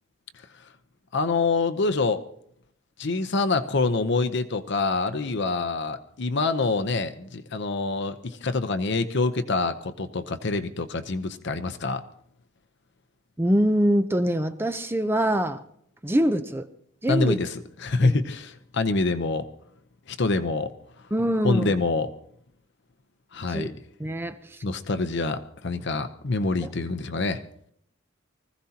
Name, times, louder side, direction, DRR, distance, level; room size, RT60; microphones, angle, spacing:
voice 1, 1.1-2.2 3.0-12.0 17.1-19.5 20.1-20.7 21.4-22.1 23.3-23.7 24.6-27.4, left 3 dB, 60° left, 0.8 m, -26 dB
voice 2, 13.4-15.6 16.0-16.7 17.0-17.4 18.0-18.2 21.1-21.7 23.5-23.7 24.0-24.6, equal, 10° right, 0.6 m, -24 dB
24.0 x 15.5 x 2.9 m
head